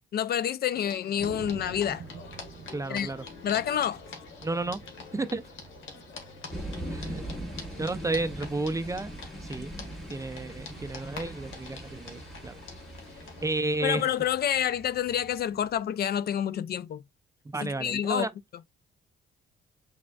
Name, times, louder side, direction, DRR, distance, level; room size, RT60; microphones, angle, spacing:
voice 1, 0.1-2.0 2.9-3.1 3.4-4.0 13.8-17.0 17.6-18.3, left 10 dB, 55° left, 0.4 m, -28 dB
sound 1, 0.7-13.4, left 5 dB, 75° left, 1.5 m, -46 dB
sound 2, 1.2-15.8, right 6 dB, 45° right, 0.8 m, -50 dB
voice 2, 2.7-3.2 4.4-4.8 5.1-5.4 6.9-7.2 7.6-9.1 9.4-9.7 10.1-12.5 13.4-14.1 17.5-18.3, right 2 dB, 15° right, 0.4 m, -32 dB
sound 3, 6.5-14.0, right 1 dB, ahead, 2.0 m, -40 dB
6.0 x 3.4 x 2.3 m
cardioid pair, 90°, 20 cm